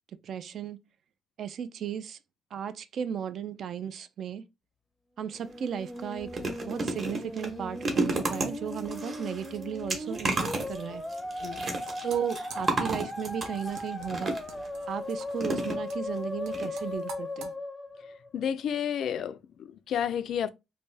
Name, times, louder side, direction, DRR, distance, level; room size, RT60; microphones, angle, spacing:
voice 1, 0.2-0.8 1.4-2.2 2.5-4.4 5.2-11.0 12.0-14.4 14.9-17.5, right 8 dB, 50° right, 0.3 m, -35 dB
Musical instrument, 5.3-18.6, left 1 dB, 10° left, 0.6 m, -38 dB
sound 1, 5.3-5.5 5.9-14.7 15.4-16.2 16.5-16.7 16.9-17.0, right 3 dB, 35° right, 1.0 m, -33 dB
sound 2, 11.6-17.5, right 5 dB, 85° right, 0.7 m, -49 dB
voice 2, 18.3-20.5, left 8 dB, 55° left, 0.3 m, -31 dB
3.3 x 2.6 x 3.3 m
cardioid pair, 150°, 0 cm